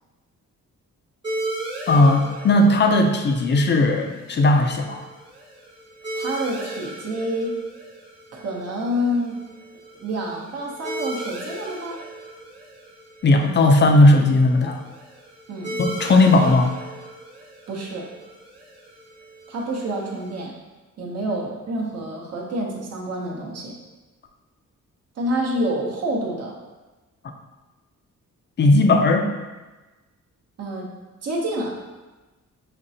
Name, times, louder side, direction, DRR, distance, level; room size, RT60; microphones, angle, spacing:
sound 1, 1.2-20.4, right 2 dB, 15° right, 0.9 m, -37 dB
voice 1, 1.9-5.0 13.2-14.8 15.8-16.7 28.6-29.3, left 2 dB, 35° left, 4 dB, 0.4 m, -16 dB
voice 2, 6.1-7.6 8.3-9.4 10.0-12.0 15.5-15.8 17.7-18.1 19.5-20.5 21.0-23.8 25.2-26.6 30.6-30.9 31.2-31.7, equal, 55° right, -2 dB, 0.8 m, -28 dB
5.1 x 3.1 x 2.7 m, 1.2 s
wide cardioid pair, 160°, 30 cm